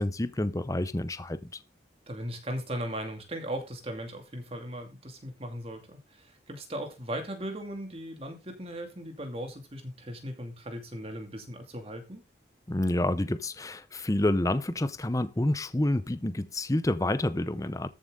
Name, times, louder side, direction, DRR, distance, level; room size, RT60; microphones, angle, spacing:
voice 1, 0.0-1.6 12.7-17.9, left 1 dB, 15° left, 0.6 m, -28 dB
voice 2, 2.1-12.2, equal, 30° right, 2.5 m, -38 dB
13.5 x 7.5 x 3.7 m
head